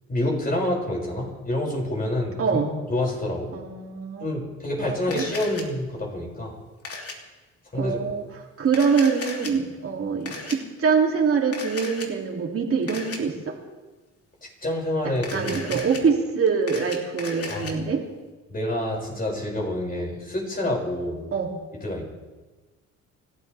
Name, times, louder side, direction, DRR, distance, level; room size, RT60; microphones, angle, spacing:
voice 1, 0.1-2.6 2.9-3.5 4.2-6.5 7.7-8.0 14.6-15.8 17.5-17.8 18.5-21.3 21.8-22.1, left 1 dB, 30° left, -2 dB, 6.1 m, -27 dB
voice 2, 2.4-2.7 3.5-4.3 4.8-5.2 7.8-13.5 15.0-18.0 21.3-21.5, right 5 dB, 50° right, -1 dB, 2.8 m, -24 dB
Camera, 5.1-5.6 6.8-7.1 8.7-9.5 10.3-10.6 11.5-12.1 12.9-13.2 15.2-16.0 16.5-17.7, left 3 dB, 50° left, 2.9 m, -35 dB
28.0 x 13.0 x 3.5 m, 1.2 s
cardioid pair, 90°, 30 cm